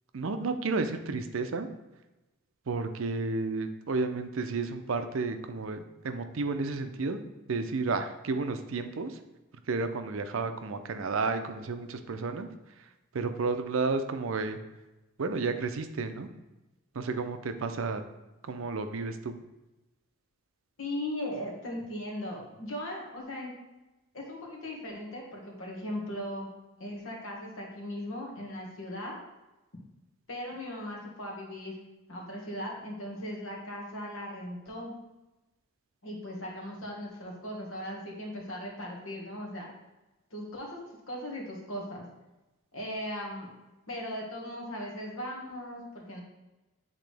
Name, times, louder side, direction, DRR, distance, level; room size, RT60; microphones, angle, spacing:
voice 1, 0.1-1.7 2.7-7.2 7.5-9.2 9.7-12.5 13.1-14.6 15.2-16.3 16.9-18.0 18.4-19.4, right 4 dB, 75° right, 8 dB, 0.5 m, -32 dB
voice 2, 20.8-23.5 24.1-26.5 26.8-29.2 30.3-31.7 32.1-34.9 36.0-39.7 40.3-40.8 41.1-42.1 42.7-43.5 43.9-46.2, left 1 dB, 80° left, -2 dB, 1.6 m, -38 dB
8.1 x 3.7 x 3.3 m, 1.0 s
head